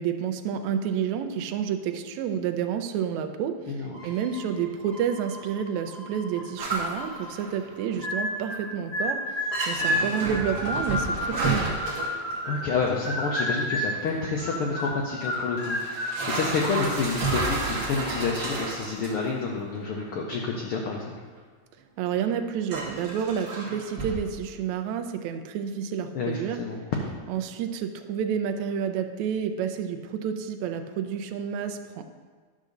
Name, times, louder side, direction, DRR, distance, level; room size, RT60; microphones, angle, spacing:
voice 1, 0.0-11.8 22.0-26.6 27.3-32.0, right 8 dB, 80° right, 7 dB, 1.8 m, -30 dB
sound 1, 3.9-9.4 9.9-10.0, equal, 10° right, 0.4 m, -47 dB
sound 2, 6.6-8.0 8.3-8.8 9.1-9.2 9.5-13.0 13.9-14.0 14.8-14.9 15.6-19.4 19.7-20.0 20.8-20.9 22.2-22.3 22.7-24.2, right 3 dB, 45° right, 1.3 m, -31 dB
sound 3, 8.0-8.6 8.9-12.7 13.0-14.0 14.4-16.2, left 1 dB, 30° left, 1.5 m, -30 dB
voice 2, 12.4-21.1 26.1-26.8, left 4 dB, 85° left, -1 dB, 1.2 m, -29 dB
10.5 x 3.8 x 6.5 m, 1.5 s
omnidirectional pair, 3.4 m